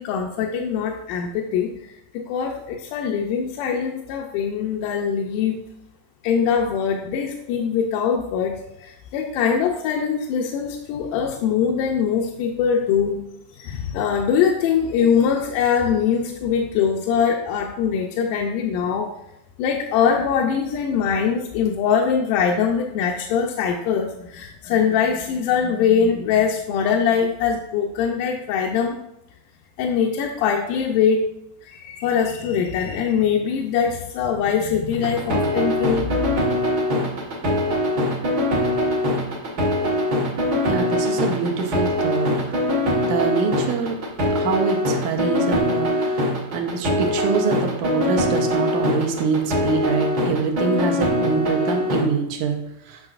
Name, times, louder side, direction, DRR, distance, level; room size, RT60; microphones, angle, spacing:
voice 1, 0.0-1.8 2.1-5.6 6.2-13.2 13.6-19.1 19.6-29.0 29.8-31.2 31.6-36.4 38.7-38.8, left 7 dB, 80° left, 1 dB, 2.1 m, -22 dB
sound 1, 34.9-52.0, left 1 dB, 60° right, 1.0 m, -22 dB
voice 2, 40.7-42.5 43.0-44.0 44.4-46.3 46.5-53.1, right 5 dB, 80° right, 3 dB, 2.2 m, -25 dB
8.8 x 6.1 x 2.4 m, 0.83 s
omnidirectional pair, 3.8 m